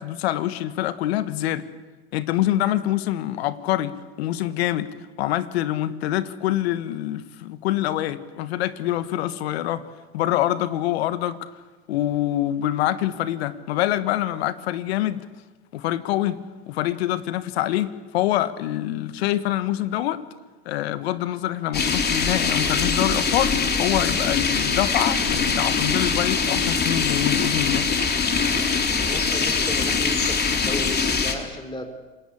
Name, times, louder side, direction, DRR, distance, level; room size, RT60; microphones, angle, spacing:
voice 1, 0.0-1.7 2.1-4.9 5.2-9.9 10.1-11.5 11.9-15.2 15.7-16.4 16.7-20.2 20.6-23.5 23.8-27.9, left 13 dB, 85° left, 14 dB, 1.4 m, -25 dB
sound 1, 21.7-31.3, left 5 dB, 30° left, 3.6 m, -23 dB
voice 2, 29.0-31.9, left 1 dB, 15° left, 8 dB, 4.2 m, -35 dB
27.5 x 20.0 x 8.5 m, 1.2 s
hypercardioid pair, 80°, 31 cm